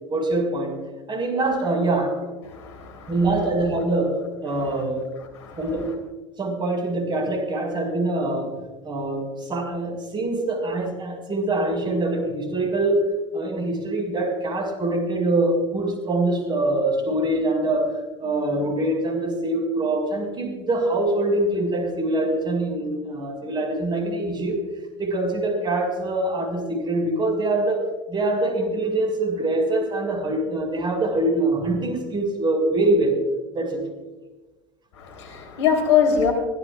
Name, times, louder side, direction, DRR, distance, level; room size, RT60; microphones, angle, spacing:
voice 1, 0.1-0.8 1.1-2.2 3.1-5.1 5.6-5.9 6.4-8.5 8.8-24.6 25.0-33.2 33.5-33.8, right 2 dB, 30° right, 3 dB, 6.2 m, -24 dB
voice 2, 2.5-3.1 5.4-5.6 35.0-36.3, left 7 dB, 75° left, 3 dB, 3.7 m, -22 dB
24.5 x 16.5 x 2.6 m, 1.2 s
hypercardioid pair, 75°, 15 cm